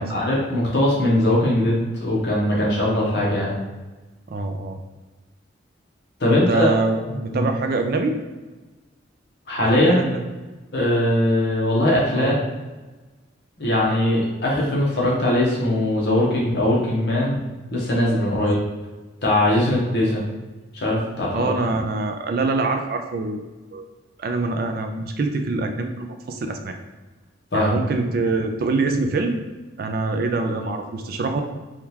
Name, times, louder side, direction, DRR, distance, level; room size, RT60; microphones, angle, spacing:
voice 1, 0.0-3.6 6.2-6.7 7.1-7.4 9.5-10.0 10.7-12.4 13.6-17.4 17.7-18.6 19.2-20.2 20.7-21.5 27.5-27.7, left 1 dB, 55° left, -4 dB, 0.9 m, -20 dB
voice 2, 4.3-4.8 6.5-8.2 9.6-10.2 12.1-12.4 18.3-18.5 19.6-19.7 21.3-23.4 23.7-23.9 24.2-26.8 27.5-29.4 29.8-31.4, right 3 dB, 50° right, 5 dB, 0.3 m, -24 dB
3.6 x 2.3 x 2.8 m, 1.2 s
head